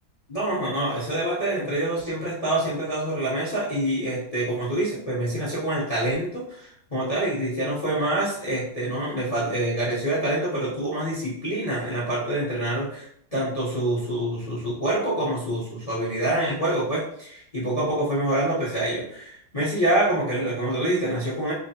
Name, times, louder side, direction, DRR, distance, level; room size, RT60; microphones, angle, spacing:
voice 1, 0.3-13.1 13.3-21.5, right 1 dB, 40° left, -7 dB, 0.5 m, -26 dB
3.5 x 3.2 x 2.8 m, 0.69 s
omnidirectional pair, 2.2 m